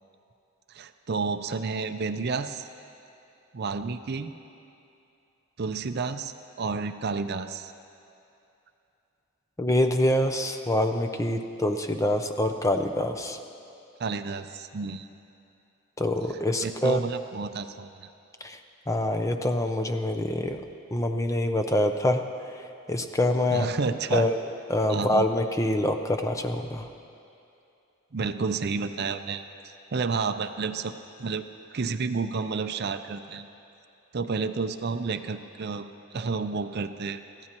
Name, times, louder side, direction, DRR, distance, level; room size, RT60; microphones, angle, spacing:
voice 1, 0.7-2.7 3.5-4.3 5.6-7.7 14.0-15.1 16.6-18.1 23.5-24.3 24.9-25.3 28.1-33.5 34.1-37.5, right 4 dB, 50° right, 9 dB, 0.5 m, -31 dB
voice 2, 9.6-13.4 16.0-17.0 18.4-18.6 18.9-20.6 20.9-22.2 22.9-23.7 24.1-24.4 24.7-26.9, left 1 dB, 15° left, 6 dB, 0.5 m, -25 dB
23.5 x 15.5 x 3.0 m, 2.7 s
head